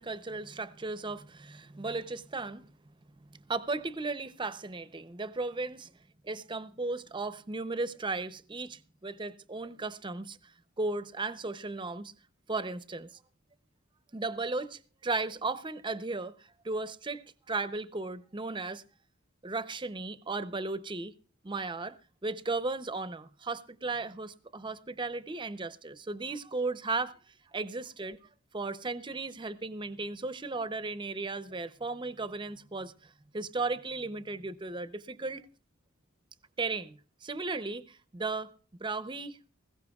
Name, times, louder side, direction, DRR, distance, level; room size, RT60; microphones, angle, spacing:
voice 1, 0.0-2.7 3.2-5.9 6.2-10.5 10.8-12.1 12.5-13.1 14.1-18.8 19.4-21.1 21.4-28.2 28.5-35.5 36.6-38.5 38.8-39.4, right 3 dB, 25° right, 0.6 m, -36 dB
20.0 x 16.5 x 2.3 m
head